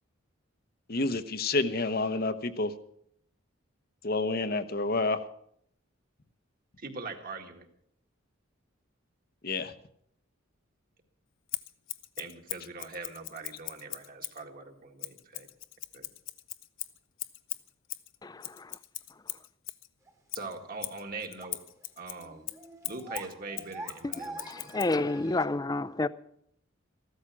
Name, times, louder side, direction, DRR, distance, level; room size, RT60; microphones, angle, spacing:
voice 1, 0.9-2.7 4.0-5.2 9.4-9.7, left 3 dB, 50° left, 1.0 m, -29 dB
voice 2, 6.8-7.7 12.2-15.5 15.9-16.1 20.3-21.6 22.0-22.5 22.8-25.0, right 3 dB, 45° right, 1.9 m, -42 dB
Scissors, 11.5-14.4 15.0-19.9 20.3-25.0, left 16 dB, 75° left, 0.8 m, -40 dB
voice 3, 18.2-18.8 24.2-26.1, left 2 dB, 20° left, 0.5 m, -30 dB
sound 1, 20.1-20.2 20.6-20.7 21.4-21.5 21.8-21.9 22.1-25.5, right 2 dB, 15° right, 1.3 m, -45 dB
15.0 x 13.0 x 6.1 m
head